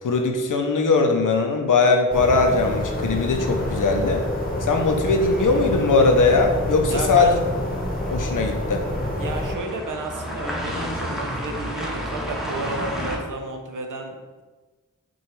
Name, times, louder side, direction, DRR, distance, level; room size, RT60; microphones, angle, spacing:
voice 1, 0.0-4.2 4.6-7.4 8.1-8.8, left 3 dB, 85° left, 3 dB, 0.6 m, -20 dB
sound 1, 2.1-9.5, equal, 30° left, 0.9 m, -27 dB
sound 2, 3.4-13.2, equal, ahead, 0.8 m, -33 dB
voice 2, 6.9-7.4 9.2-14.4, right 2 dB, 85° right, 3 dB, 0.6 m, -32 dB
6.0 x 2.3 x 3.1 m, 1.3 s
wide cardioid pair, 50°, 30 cm